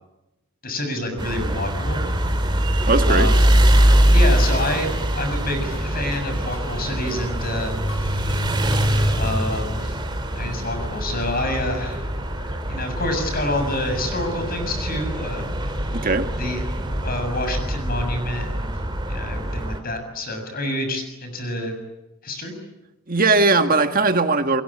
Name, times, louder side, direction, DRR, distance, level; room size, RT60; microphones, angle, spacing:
voice 1, 0.6-2.0 3.1-3.4 4.1-8.3 9.1-10.0 10.3-12.1 12.4-15.9 16.4-18.7 19.1-21.7 22.2-22.5, left 1 dB, 40° left, 7.1 m, -28 dB
sound 1, 1.2-19.8, equal, 20° right, 3.1 m, -22 dB
voice 2, 2.9-3.3 15.9-16.3 23.1-24.6, right 3 dB, 40° right, 1.7 m, -19 dB
sound 2, 5.6-10.3, left 1 dB, 70° left, 5.1 m, -42 dB
29.5 x 22.5 x 8.8 m
head